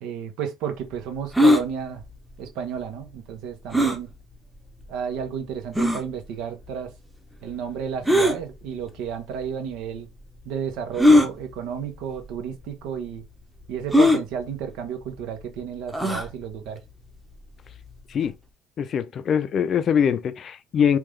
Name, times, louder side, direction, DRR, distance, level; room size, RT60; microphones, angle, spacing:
voice 1, 0.0-2.0 2.4-4.1 4.9-6.9 7.4-10.1 10.4-13.2 13.7-16.8, right 7 dB, 75° right, 0.9 m, -32 dB
sound 1, 1.3-1.6 3.7-4.0 4.8-4.9 5.8-6.0 8.0-8.4 9.4-9.5 11.0-11.3 12.2-12.4 12.6-12.7 13.9-14.2 15.9-16.3, left 1 dB, 5° right, 0.8 m, -18 dB
voice 2, 18.8-21.0, left 8 dB, 45° left, 0.4 m, -23 dB
3.6 x 2.4 x 3.2 m
supercardioid pair, 105°, 0 cm